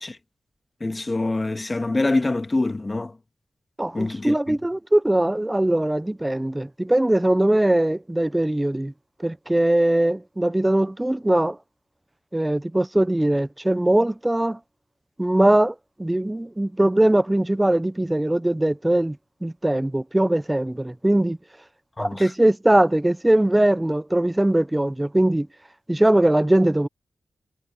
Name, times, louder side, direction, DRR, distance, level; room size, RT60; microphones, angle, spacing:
voice 1, 0.8-3.1 3.9-4.6 22.0-22.3, left 2 dB, 35° left, 2.0 m, -25 dB
voice 2, 3.8-8.9 9.2-11.6 12.3-14.6 15.2-19.2 19.4-21.4 22.0-25.5 25.9-26.9, right 1 dB, 15° right, 0.7 m, -21 dB
cardioid pair, 60°, 0 cm